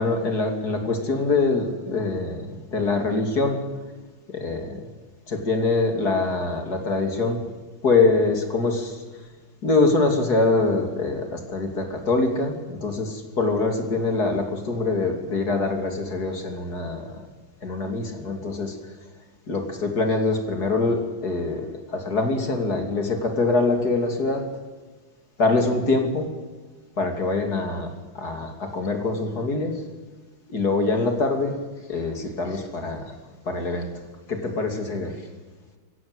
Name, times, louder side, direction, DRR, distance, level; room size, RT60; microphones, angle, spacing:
voice 1, 0.0-3.6 4.3-4.8 5.3-7.4 7.8-9.0 9.6-17.2 17.6-18.7 19.5-24.4 25.4-26.3 27.0-29.7 30.5-31.5 31.9-33.1 33.5-33.9 34.3-35.1, left 3 dB, 45° left, 4 dB, 3.4 m, -24 dB
23.0 x 16.0 x 8.1 m, 1.3 s
omnidirectional pair, 2.3 m